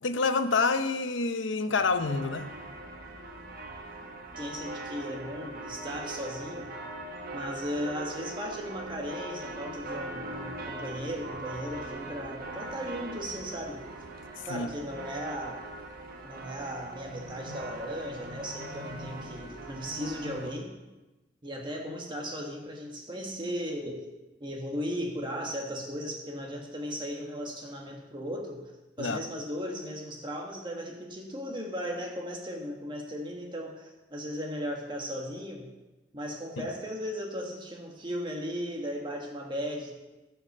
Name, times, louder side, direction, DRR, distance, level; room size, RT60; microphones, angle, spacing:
voice 1, 0.0-2.5 14.4-14.7 29.0-29.2 36.6-36.7, left 4 dB, 75° left, 10 dB, 0.7 m, -28 dB
sound 1, 1.8-20.5, right 2 dB, 50° right, 1.4 m, -41 dB
voice 2, 4.4-6.7 7.3-13.8 14.5-15.6 16.2-20.7 21.4-24.0 24.4-28.7 29.0-35.7 36.1-39.9, equal, 25° right, 0 dB, 1.5 m, -36 dB
14.5 x 5.8 x 6.6 m, 1.1 s
head